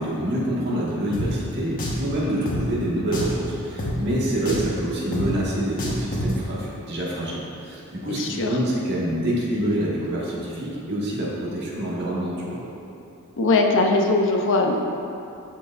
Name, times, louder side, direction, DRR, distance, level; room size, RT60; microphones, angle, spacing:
voice 1, 0.0-12.6, right 1 dB, 50° right, -6 dB, 1.7 m, -26 dB
Drum, 1.1-1.3 1.8-2.0 2.5-2.6 3.1-3.4 3.8-3.9 4.5-4.7 5.1-5.3 5.8-6.3, left 1 dB, 40° left, 1.1 m, -27 dB
voice 2, 8.1-8.5 13.4-14.8, left 2 dB, 60° left, 2 dB, 0.6 m, -20 dB
13.5 x 4.6 x 2.5 m, 2.7 s
head